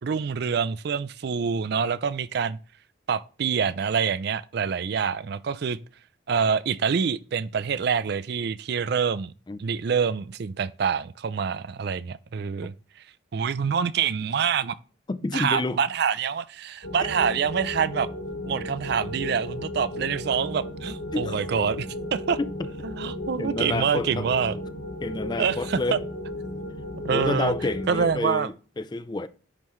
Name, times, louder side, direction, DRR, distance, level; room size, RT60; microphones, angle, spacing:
voice 1, 0.0-2.6 3.1-5.8 6.3-9.3 9.6-13.0 13.3-14.8 15.3-18.1 18.4-22.4 22.8-24.6 25.4-26.0 26.9-27.5 27.9-28.5, right 6 dB, 55° right, 0.4 m, -26 dB
voice 2, 15.1-15.8 21.1-21.5 22.6-22.7 23.4-24.3 25.0-26.0 27.1-29.3, left 2 dB, 20° left, 0.4 m, -29 dB
sound 1, 16.8-28.1, left 1 dB, 55° left, 0.9 m, -35 dB
9.9 x 5.5 x 3.1 m
head